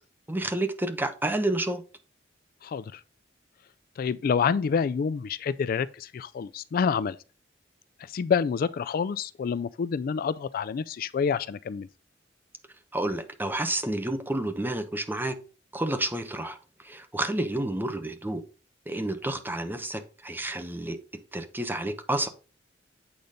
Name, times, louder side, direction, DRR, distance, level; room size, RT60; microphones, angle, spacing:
voice 1, 0.3-1.8 12.9-15.4 15.7-16.6 16.8-18.4 18.9-21.0 21.3-22.3, right 1 dB, 10° right, 0.9 m, -30 dB
voice 2, 2.6-3.0 4.0-7.2 8.0-11.9, left 6 dB, 50° left, 0.3 m, -28 dB
8.6 x 3.9 x 5.0 m
head